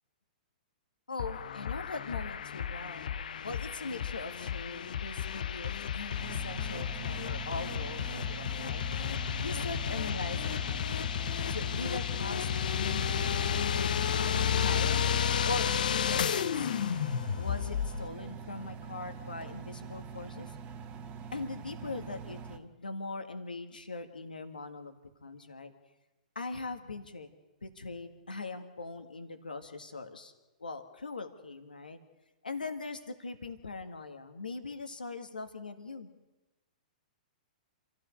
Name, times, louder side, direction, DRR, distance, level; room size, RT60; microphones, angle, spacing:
voice 1, 1.1-3.1 3.4-9.1 9.4-11.2 11.5-12.5 12.7-13.1 13.5-15.1 15.4-16.9 17.4-20.6 21.3-25.0 25.2-25.7 26.4-27.3 27.6-30.3 30.6-32.0 32.4-36.1, left 3 dB, 90° left, 7 dB, 1.9 m, -41 dB
sound 1, 1.2-18.1, left 8 dB, 70° left, 0.7 m, -32 dB
Engine, 6.2-22.6, right 6 dB, 30° right, 1.6 m, -44 dB
27.0 x 14.5 x 6.6 m, 1.1 s
hypercardioid pair, 115°, 5 cm